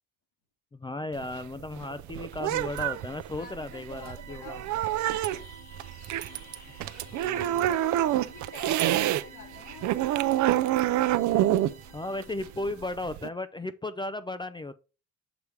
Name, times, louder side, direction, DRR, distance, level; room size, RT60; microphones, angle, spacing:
voice 1, 0.7-4.6 7.1-7.7 11.9-14.7, left 2 dB, 15° left, 0.4 m, -35 dB
sound 1, 1.1-9.2 9.6-13.3, right 13 dB, 70° right, 0.5 m, -27 dB
sound 2, 1.9-12.7, right 8 dB, 55° right, 1.3 m, -53 dB
voice 2, 3.4-5.4 6.8-10.1, left 2 dB, 80° left, 2.8 m, -48 dB
sound 3, 5.2-12.9, left 4 dB, 65° left, 1.5 m, -54 dB
6.9 x 3.3 x 4.6 m
cardioid pair, 90°, 30 cm